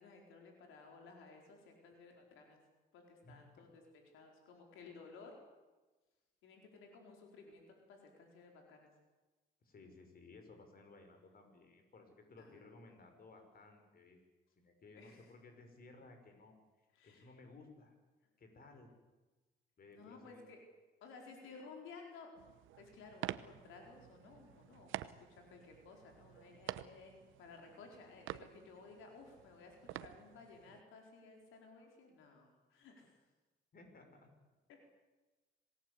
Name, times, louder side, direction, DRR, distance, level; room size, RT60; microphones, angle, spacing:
voice 1, 0.0-2.6 2.9-3.8 4.1-5.4 6.4-8.9 12.4-12.7 15.0-15.3 16.9-17.3 19.9-20.6 21.0-22.3 22.8-33.2 34.7-34.8, left 4 dB, 90° left, 2 dB, 4.5 m, -56 dB
voice 2, 3.2-3.7 9.6-14.2 14.6-18.0 18.4-18.9 19.8-20.4 24.4-24.6 33.7-34.3, left 3 dB, 50° left, 6 dB, 5.8 m, -59 dB
sound 1, 22.4-30.8, right 14 dB, 90° right, 0.9 m, -49 dB
26.5 x 18.5 x 8.4 m, 1.2 s
cardioid pair, 90°, 20 cm